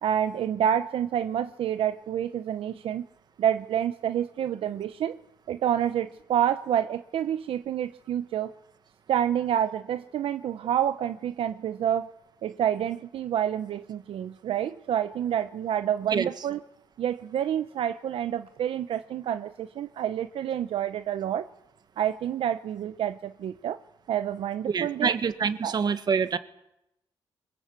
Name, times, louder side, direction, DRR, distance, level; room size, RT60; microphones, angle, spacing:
voice 1, 0.0-3.0 3.4-5.2 5.5-8.5 9.1-12.1 12.4-16.6 17.0-21.5 22.0-23.8 24.1-25.1 25.6-25.7, right 10 dB, 75° right, 9 dB, 0.8 m, -28 dB
voice 2, 24.7-26.4, right 6 dB, 45° right, 10 dB, 1.6 m, -26 dB
24.0 x 21.5 x 8.3 m, 0.84 s
cardioid pair, 115°, 10 cm